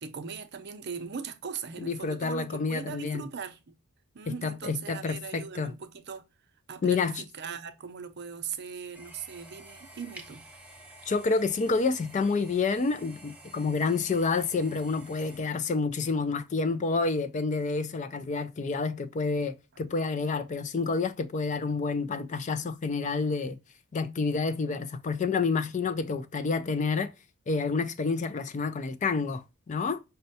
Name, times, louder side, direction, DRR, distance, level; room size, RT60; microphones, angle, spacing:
voice 1, 0.0-3.8 4.1-6.3 6.7-10.4, right 6 dB, 50° right, 0.5 m, -39 dB
voice 2, 1.8-3.3 4.3-5.7 6.8-7.2 11.1-23.6 23.9-27.1 27.5-30.0, left 4 dB, 35° left, 0.3 m, -29 dB
sound 1, 8.9-15.4, right 1 dB, 5° right, 0.6 m, -50 dB
5.3 x 2.2 x 2.6 m
head